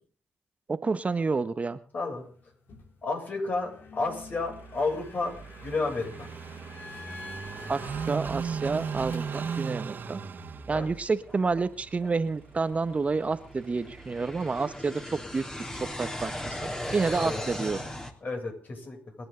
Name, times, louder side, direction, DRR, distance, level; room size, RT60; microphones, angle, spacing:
voice 1, 0.7-1.8 7.7-10.2 10.7-15.4 16.0-17.8, right 4 dB, 35° right, 11 dB, 1.2 m, -29 dB
voice 2, 1.9-2.2 3.0-5.4 5.6-6.3 10.7-10.9 17.2-17.4 18.2-19.0, left 3 dB, 45° left, 2 dB, 7.7 m, -31 dB
sound 1, 2.1-9.6, left 3 dB, 65° left, 4.2 m, -48 dB
Car passing by / Idling, 4.1-14.8, right 6 dB, 50° right, 2.0 m, -38 dB
sound 2, 11.1-18.1, left 1 dB, 15° left, 3.4 m, -38 dB
29.5 x 10.5 x 4.0 m, 0.40 s
supercardioid pair, 60°, 4 cm